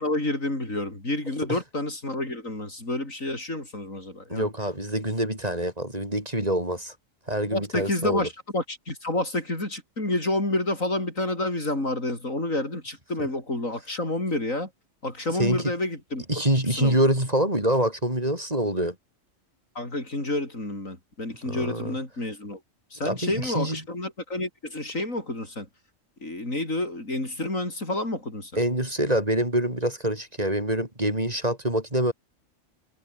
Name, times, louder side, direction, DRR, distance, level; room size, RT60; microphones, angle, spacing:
voice 1, 0.0-4.5 7.5-14.7 15.0-16.2 16.8-17.0 19.8-22.6 22.9-25.7 26.2-28.6, left 2 dB, 85° left, 7.5 m, -29 dB
voice 2, 4.3-6.9 7.3-8.2 15.4-15.6 16.3-18.9 21.5-22.0 23.0-23.8 28.6-32.1, right 1 dB, 30° right, 6.2 m, -25 dB
omnidirectional pair, 1.3 m